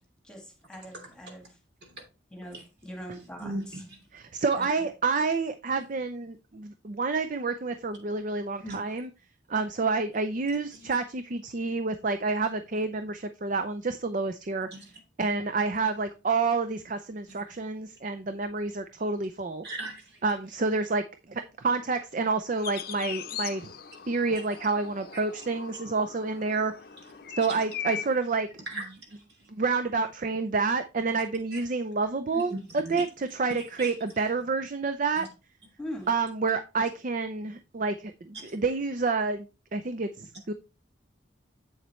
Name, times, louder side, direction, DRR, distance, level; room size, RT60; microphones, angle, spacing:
voice 1, 0.2-1.6 2.3-3.8 4.5-4.9 35.8-36.1, equal, 5° left, 1.7 m, -42 dB
voice 2, 3.4-3.9 8.6-8.8 10.8-11.0 14.7-15.0 17.3-17.4 19.6-20.2 27.5-27.6 28.7-29.2 31.5-31.6 32.3-33.1 33.8-33.9 35.2-35.3 38.4-38.6, right 1 dB, 60° right, 3.0 m, -38 dB
voice 3, 4.3-9.1 9.5-14.7 15.2-19.6 20.2-21.0 21.3-23.7 24.1-26.7 27.4-28.5 29.5-35.3 36.1-40.5, right 4 dB, 40° right, 0.5 m, -29 dB
sound 1, 22.6-28.2, left 8 dB, 50° left, 0.7 m, -40 dB
7.9 x 7.1 x 3.1 m
head